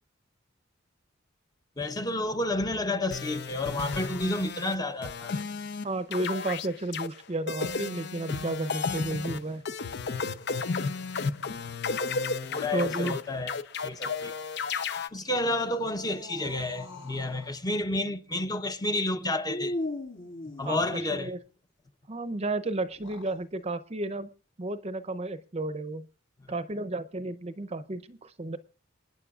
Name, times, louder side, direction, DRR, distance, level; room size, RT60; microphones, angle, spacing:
voice 1, 1.8-5.3 12.5-14.4 15.1-19.7 20.6-21.3, left 2 dB, 20° left, 0.8 m, -30 dB
sound 1, 3.1-4.8 5.0-5.9 6.1-7.1 7.5-15.1, left 4 dB, 55° left, 0.6 m, -33 dB
voice 2, 5.8-9.6 12.7-13.2 20.6-21.4 22.1-24.3 24.6-26.1 26.5-28.6, right 2 dB, 30° right, 0.7 m, -32 dB
sound 2, 15.3-17.6 19.5-21.3 22.9-23.4, left 1 dB, 75° left, 7.4 m, -39 dB
28.0 x 9.6 x 2.4 m
head